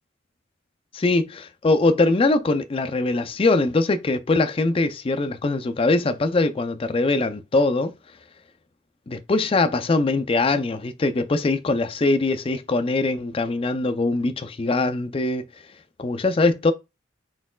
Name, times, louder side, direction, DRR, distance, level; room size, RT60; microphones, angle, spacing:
voice 1, 0.9-7.9 9.1-15.4 16.0-16.7, left 3 dB, 30° left, 0.4 m, -22 dB
4.3 x 4.0 x 2.2 m
head